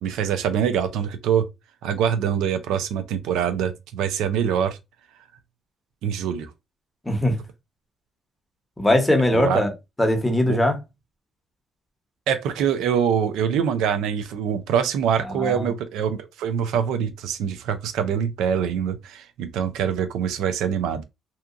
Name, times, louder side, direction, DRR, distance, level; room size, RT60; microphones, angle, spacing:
voice 1, 0.0-1.5 1.8-4.8 6.0-6.5 9.3-9.6 10.5-10.6 12.3-21.0, right 8 dB, 90° right, 0.4 m, -24 dB
voice 2, 7.1-7.4 8.8-9.7 10.0-10.8 15.4-15.7, left 1 dB, 10° left, 0.9 m, -20 dB
2.7 x 2.3 x 2.4 m
cardioid pair, 90°, 0 cm